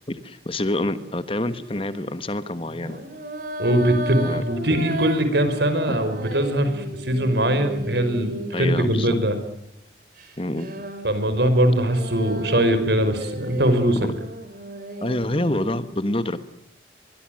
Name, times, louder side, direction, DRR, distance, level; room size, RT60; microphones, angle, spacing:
voice 1, 0.1-3.0 4.2-4.4 5.9-6.0 8.5-9.2 10.4-10.9 13.9-14.1 15.0-16.4, left 1 dB, 30° left, 12 dB, 1.3 m, -27 dB
sound 1, 1.0-1.3 2.7-9.3 10.2-15.8, right 1 dB, 50° right, 4.0 m, -34 dB
voice 2, 3.6-8.3 8.6-9.4 11.0-14.0, right 1 dB, 70° right, 9 dB, 5.1 m, -21 dB
24.0 x 22.5 x 7.7 m, 0.76 s
head